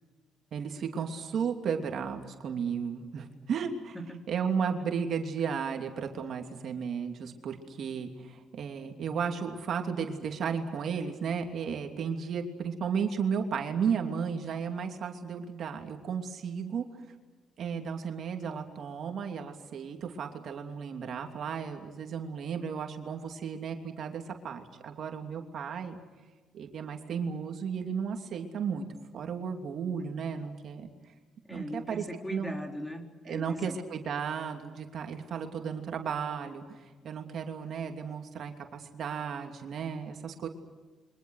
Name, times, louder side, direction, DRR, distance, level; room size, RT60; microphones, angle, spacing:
voice 1, 0.5-3.9 4.3-16.9 17.6-26.0 26.5-28.9 29.1-30.9 31.5-32.0 32.3-32.5 33.2-40.5, right 6 dB, 65° right, 4 dB, 2.9 m, -34 dB
voice 2, 3.9-4.3 31.4-33.8, equal, 10° left, 3 dB, 4.1 m, -39 dB
28.5 x 24.0 x 6.6 m, 1.4 s
cardioid pair, 90°, 0 cm